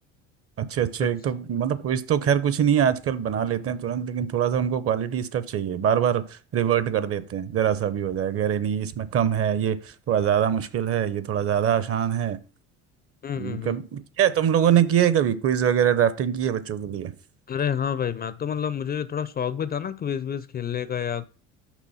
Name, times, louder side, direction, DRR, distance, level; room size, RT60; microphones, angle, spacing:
voice 1, 0.6-12.4 13.4-17.1, right 9 dB, 45° right, 0.7 m, -24 dB
voice 2, 13.2-13.8 17.5-21.2, left 8 dB, 30° left, 0.4 m, -29 dB
6.1 x 3.9 x 5.5 m
supercardioid pair, 80°, 34 cm